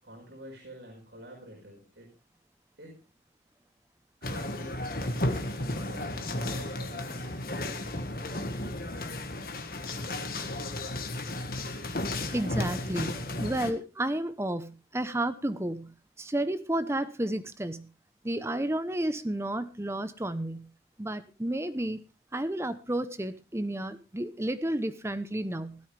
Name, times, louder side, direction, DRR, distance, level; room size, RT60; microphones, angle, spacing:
voice 1, 0.0-2.1 2.8-3.0 4.2-7.4, equal, 85° right, -1 dB, 5.0 m, -48 dB
sound 1, 4.2-13.7, left 1 dB, 55° left, 1.6 m, -33 dB
voice 2, 12.3-17.9 18.2-20.7 21.0-22.0 22.3-25.8, right 1 dB, 15° right, 12 dB, 0.8 m, -32 dB
16.5 x 13.0 x 3.4 m, 0.31 s
head